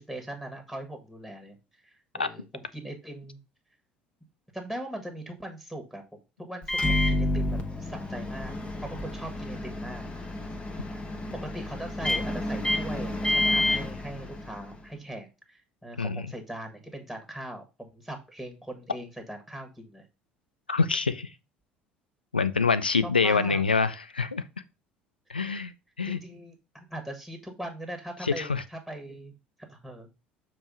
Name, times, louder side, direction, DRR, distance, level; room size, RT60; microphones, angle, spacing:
voice 1, 0.0-1.6 1.8-3.4 4.5-6.0 6.4-8.6 8.8-10.1 11.3-20.1 23.0-23.6 26.1-29.3 29.7-30.1, right 1 dB, 5° left, 1.7 m, -40 dB
Microwave oven, 6.6-14.8, left 1 dB, 20° left, 1.2 m, -29 dB
voice 2, 16.0-16.3 20.7-21.3 22.3-24.4 25.3-25.7 26.0-26.2 28.2-28.6, left 4 dB, 85° left, 0.3 m, -25 dB
7.0 x 3.2 x 5.3 m
figure-of-eight pair, 60°, 5 cm